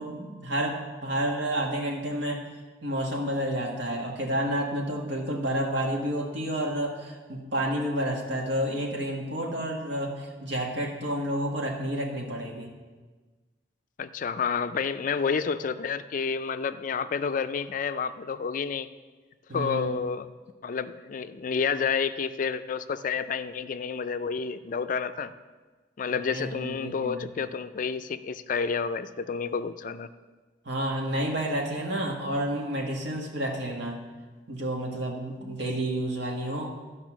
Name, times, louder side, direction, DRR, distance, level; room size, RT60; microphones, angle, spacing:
voice 1, 0.0-2.4 2.8-12.7 19.5-20.0 26.3-27.3 30.6-34.0 34.5-36.7, right 1 dB, 75° right, 0 dB, 1.8 m, -30 dB
voice 2, 14.0-18.9 19.5-20.3 20.6-25.3 26.0-30.1, left 6 dB, 50° left, 12 dB, 0.4 m, -30 dB
12.5 x 5.4 x 6.2 m, 1.3 s
head